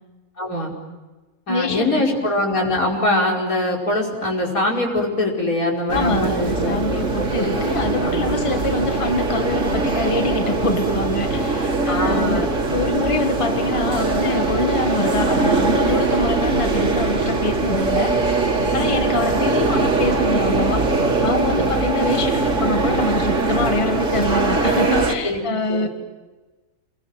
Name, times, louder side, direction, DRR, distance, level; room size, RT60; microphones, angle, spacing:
voice 1, 0.4-0.7 1.5-7.6 8.0-8.3 11.9-12.5 18.7-18.8 21.6-21.8 25.2-25.9, left 1 dB, 75° left, -1 dB, 5.6 m, -23 dB
voice 2, 1.5-2.1 5.9-18.2 18.7-20.9 21.2-25.9, left 2 dB, 20° left, 6 dB, 1.6 m, -25 dB
sound 1, 5.9-25.1, right 3 dB, 60° right, 2.7 m, -21 dB
28.0 x 22.0 x 9.1 m, 1.2 s
omnidirectional pair, 1.5 m